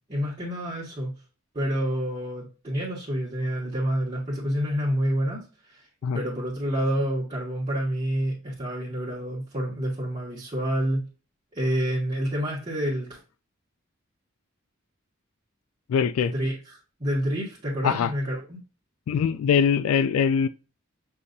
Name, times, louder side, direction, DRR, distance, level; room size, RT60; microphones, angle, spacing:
voice 1, 0.1-1.1 1.5-5.9 6.1-11.0 11.5-13.2 16.2-18.6, equal, 30° right, 1.5 m, -28 dB
voice 2, 15.9-16.3 17.8-18.1 19.1-20.5, left 7 dB, 80° left, 0.3 m, -22 dB
6.8 x 2.8 x 2.5 m
head